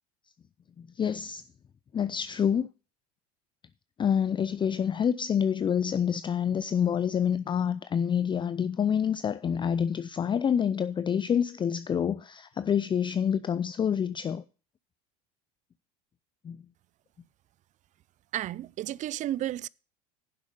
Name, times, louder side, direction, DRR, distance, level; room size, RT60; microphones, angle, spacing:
voice 1, 0.8-1.4 1.9-2.7 4.0-14.4 16.4-16.6, left 8 dB, 25° left, 0.5 m, -27 dB
voice 2, 18.3-19.7, right 13 dB, 40° right, 0.4 m, -32 dB
10.0 x 7.5 x 5.2 m
hypercardioid pair, 90°, 20 cm